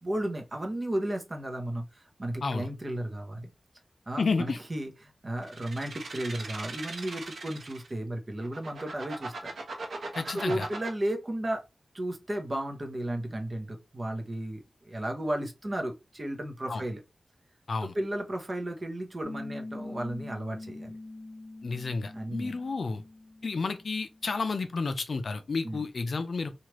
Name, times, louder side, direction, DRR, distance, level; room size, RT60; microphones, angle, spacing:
voice 1, 0.0-3.5 4.1-9.5 10.4-11.6 11.9-17.0 17.8-21.0 22.1-22.6 25.6-25.8, right 1 dB, 30° right, 0.7 m, -34 dB
voice 2, 4.2-4.6 10.1-10.7 16.7-16.8 17.7-17.9 21.6-23.0 23.4-26.5, left 4 dB, 65° left, 0.4 m, -31 dB
sound 1, 5.4-7.9 8.4-10.9, right 3 dB, 85° right, 0.9 m, -39 dB
Piano, 19.2-24.3, left 2 dB, 20° left, 1.6 m, -44 dB
3.2 x 2.4 x 2.9 m
wide cardioid pair, 125°, 0 cm